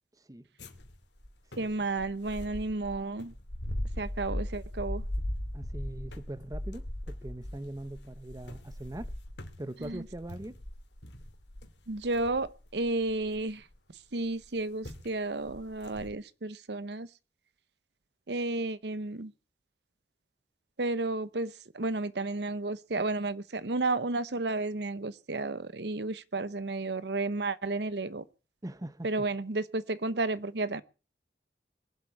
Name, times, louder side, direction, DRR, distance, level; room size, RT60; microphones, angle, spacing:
sound 1, 0.6-13.7 14.4-14.6 14.8-15.1 15.5-16.1, left 1 dB, 80° left, 2.5 m, -39 dB
voice 1, 1.6-3.3 4.0-5.0 9.8-10.0 11.9-13.6 14.1-17.1 18.3-19.3 20.8-28.2 29.0-30.8, right 2 dB, 70° right, 0.9 m, -32 dB
voice 2, 5.5-9.1 9.6-10.6 28.6-29.3, right 1 dB, 20° right, 0.8 m, -41 dB
21.0 x 8.1 x 8.2 m
head